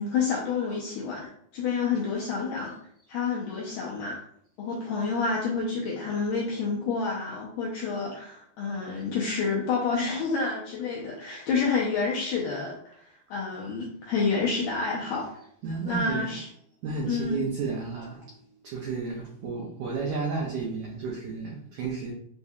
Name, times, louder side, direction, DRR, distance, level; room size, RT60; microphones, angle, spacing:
voice 1, 0.0-2.7 3.1-4.2 4.6-15.3 15.8-16.5 17.1-17.4, left 4 dB, 85° left, -4 dB, 1.8 m, -29 dB
voice 2, 15.6-16.4 16.8-22.1, right 4 dB, 85° right, -2 dB, 1.7 m, -32 dB
6.6 x 2.7 x 2.3 m, 0.68 s
omnidirectional pair, 4.4 m